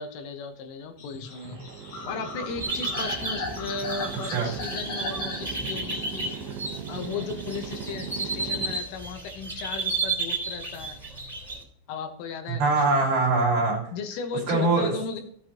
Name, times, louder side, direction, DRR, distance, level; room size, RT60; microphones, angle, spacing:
voice 1, 0.0-1.6 2.1-6.3 6.9-11.0 11.9-12.6 13.9-15.2, left 5 dB, 80° left, 5 dB, 3.6 m, -35 dB
sound 1, 1.0-7.5 7.9-9.3 9.5-10.2, left 3 dB, 50° left, 2.3 m, -39 dB
sound 2, 1.3-8.8, right 8 dB, 85° right, 2.0 m, -39 dB
sound 3, 2.6-11.6, right 3 dB, ahead, 2.4 m, -33 dB
voice 2, 4.2-4.5 12.5-13.9 14.5-14.9, right 3 dB, 55° right, -1 dB, 3.7 m, -23 dB
15.0 x 8.9 x 2.9 m, 0.65 s
omnidirectional pair, 5.9 m